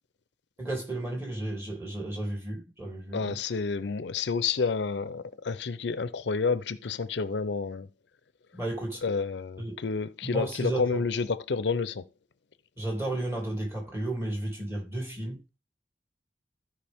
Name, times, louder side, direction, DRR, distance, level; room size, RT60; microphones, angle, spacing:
voice 1, 0.6-3.4 8.5-9.0 9.6-9.8 10.2-11.0 12.8-15.4, right 1 dB, 15° right, 2.7 m, -33 dB
voice 2, 3.1-7.9 9.0-12.0, left 5 dB, 75° left, 0.5 m, -29 dB
14.5 x 4.9 x 3.5 m
head